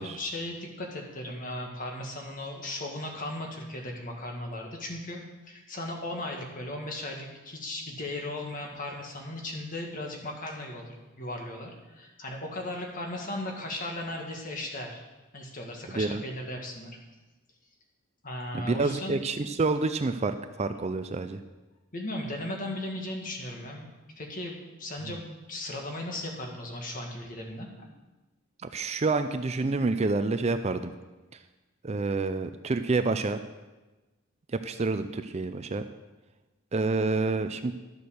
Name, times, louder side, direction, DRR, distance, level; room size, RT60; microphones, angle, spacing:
voice 1, 0.0-5.2 5.5-15.0 15.3-17.0 18.2-19.2 21.9-25.2 25.5-27.9, left 1 dB, 40° left, 1 dB, 1.8 m, -37 dB
voice 2, 18.5-21.4 28.7-30.9 31.8-33.4 34.6-35.9 36.7-37.7, right 3 dB, 30° right, 9 dB, 0.4 m, -28 dB
12.0 x 6.9 x 6.4 m, 1.1 s
head